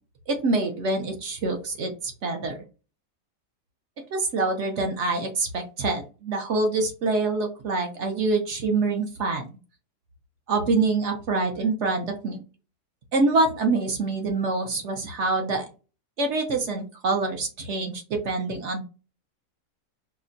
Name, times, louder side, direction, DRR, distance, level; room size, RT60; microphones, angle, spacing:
voice 1, 0.3-2.6 4.1-9.5 10.5-12.4 13.1-15.7 16.2-18.8, right 3 dB, 60° right, 4 dB, 0.8 m, -25 dB
4.9 x 2.2 x 2.5 m, 0.33 s
omnidirectional pair, 1.7 m